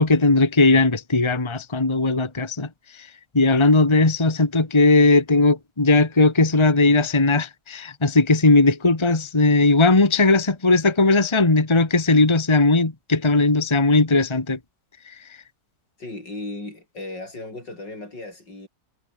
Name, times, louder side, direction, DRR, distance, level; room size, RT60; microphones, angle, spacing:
voice 1, 0.0-2.7 3.3-14.6, left 3 dB, 15° left, 1.7 m, -18 dB
voice 2, 16.0-18.7, left 2 dB, 80° left, 8.2 m, -36 dB
omnidirectional pair, 1.9 m